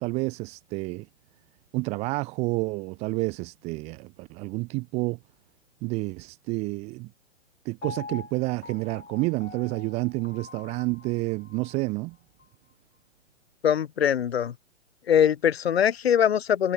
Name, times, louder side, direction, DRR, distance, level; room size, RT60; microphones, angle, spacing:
voice 1, 0.0-1.1 1.7-5.2 5.8-7.1 7.6-12.2, right 25 dB, 15° right, 0.9 m, -29 dB
Piano, 7.8-11.9 12.4-12.5, left 5 dB, 65° left, 7.9 m, -44 dB
voice 2, 13.6-14.5 15.1-16.7, left 9 dB, 50° left, 4.2 m, -22 dB
figure-of-eight pair, 120°, 39 cm